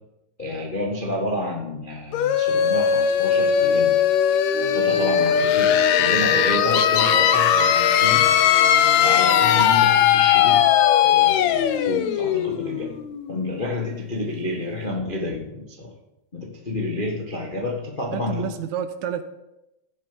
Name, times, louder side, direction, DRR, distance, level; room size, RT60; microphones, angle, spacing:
voice 1, 0.4-4.0 4.7-8.3 9.0-10.7 11.0-13.0 13.3-15.9 16.3-18.5, left 2 dB, 50° left, -1 dB, 0.6 m, -29 dB
sound 1, 2.1-13.7, left 9 dB, 70° left, 1.8 m, -19 dB
sound 2, 4.5-9.8, right 3 dB, 40° right, 1.4 m, -33 dB
voice 2, 18.1-19.2, right 9 dB, 75° right, 11 dB, 1.8 m, -29 dB
16.0 x 7.6 x 5.1 m, 0.92 s
omnidirectional pair, 3.6 m